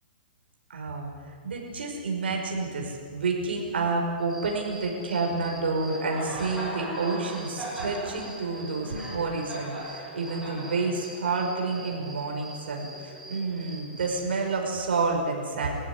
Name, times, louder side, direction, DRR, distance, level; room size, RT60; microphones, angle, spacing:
voice 1, 0.7-1.1 1.4-15.7, right 3 dB, 85° right, 1 dB, 5.4 m, -29 dB
Cricket, 4.2-14.2, right 1 dB, 5° right, 6.5 m, -39 dB
24.5 x 15.0 x 9.8 m, 2.2 s
hypercardioid pair, 155°, 5 cm